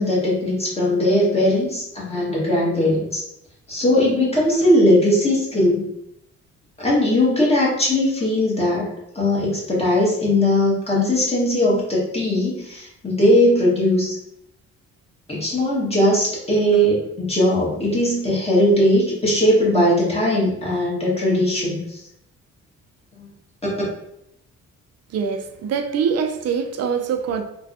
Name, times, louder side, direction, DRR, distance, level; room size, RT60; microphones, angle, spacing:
voice 1, 0.0-3.2 3.7-5.8 6.8-8.9 9.1-14.1 15.3-21.8 23.2-23.3, left 1 dB, 20° left, -5 dB, 1.4 m, -19 dB
voice 2, 25.1-27.4, right 6 dB, 55° right, 7 dB, 0.5 m, -24 dB
3.3 x 2.2 x 2.6 m, 0.78 s
cardioid pair, 90°, 30 cm